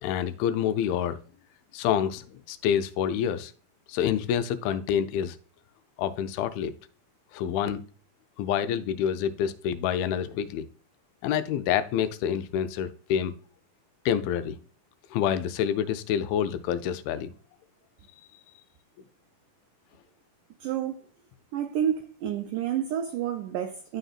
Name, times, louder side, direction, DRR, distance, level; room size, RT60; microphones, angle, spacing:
voice 1, 0.0-1.2 1.7-3.5 3.9-5.4 6.0-6.7 7.3-7.8 8.4-10.7 11.2-13.4 14.1-14.6 15.1-17.3, left 9 dB, 85° left, 2.3 m, -27 dB
voice 2, 20.6-21.1 21.5-24.0, right 9 dB, 90° right, 1.8 m, -29 dB
11.5 x 3.9 x 2.4 m
omnidirectional pair, 4.3 m